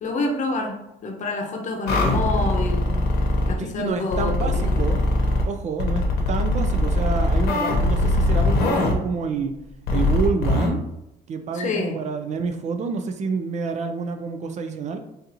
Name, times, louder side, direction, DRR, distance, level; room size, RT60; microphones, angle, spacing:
voice 1, 0.0-2.9 3.5-4.9 11.5-12.0, left 2 dB, 45° left, 2 dB, 0.7 m, -28 dB
sound 1, 1.9-3.5 4.1-5.4 5.8-8.9 9.9-10.7, left 2 dB, 75° left, 0.9 m, -21 dB
voice 2, 3.6-5.1 5.5-6.0 6.3-9.5 9.9-10.8 11.3-15.0, right 4 dB, 45° right, 7 dB, 0.4 m, -28 dB
4.0 x 2.5 x 2.7 m, 0.85 s
cardioid pair, 110°, 17 cm